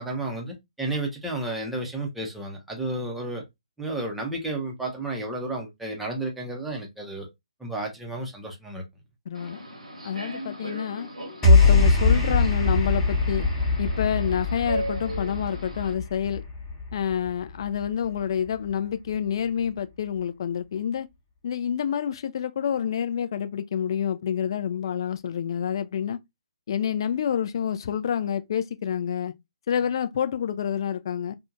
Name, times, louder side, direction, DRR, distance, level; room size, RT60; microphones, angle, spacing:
voice 1, 0.0-3.4 3.8-7.3 7.6-8.8, right 2 dB, 5° right, 0.6 m, -32 dB
voice 2, 9.3-9.6 10.0-11.1 11.4-13.5 13.8-16.4 16.9-21.1 21.4-26.2 26.7-29.3 29.7-31.3, left 8 dB, 45° left, 0.3 m, -28 dB
Subway metro underground, 9.3-15.9, right 1 dB, 80° right, 1.0 m, -37 dB
sound 1, 11.4-17.9, left 3 dB, 15° left, 0.9 m, -22 dB
2.6 x 2.2 x 2.5 m
figure-of-eight pair, 135°, 3 cm